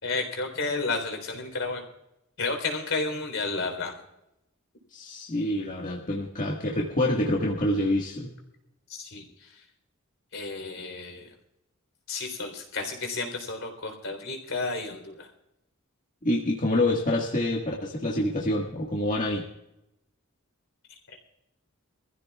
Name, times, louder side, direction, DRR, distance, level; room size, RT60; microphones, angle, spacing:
voice 1, 0.0-1.8 2.4-3.9 8.9-9.5 10.3-11.3 12.1-15.3 21.1-21.2, left 3 dB, 70° left, 3 dB, 3.8 m, -32 dB
voice 2, 4.9-8.3 16.2-19.4, left 1 dB, 40° left, -2 dB, 1.7 m, -27 dB
25.5 x 15.0 x 2.4 m, 0.86 s
head